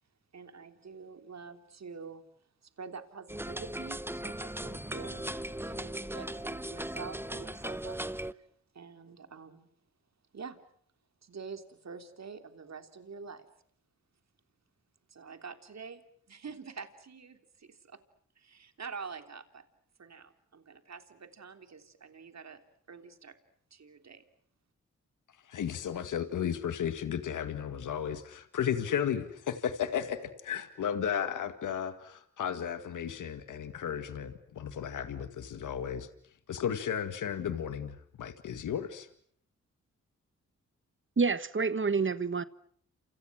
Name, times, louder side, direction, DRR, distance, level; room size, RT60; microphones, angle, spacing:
voice 1, 0.3-2.2 2.6-5.3 5.6-8.5 8.7-9.7 10.3-10.6 11.2-13.5 15.1-16.0 16.3-18.0 18.3-19.6 20.0-22.6 22.9-23.4 23.7-24.2, right 5 dB, 60° right, 3.4 m, -46 dB
sound 1, 3.3-8.3, right 1 dB, 5° right, 1.2 m, -38 dB
voice 2, 25.5-36.1 36.5-39.1, left 8 dB, 90° left, 1.9 m, -34 dB
voice 3, 41.2-42.4, right 4 dB, 40° right, 1.4 m, -28 dB
29.5 x 27.5 x 6.2 m
cardioid pair, 50°, 30 cm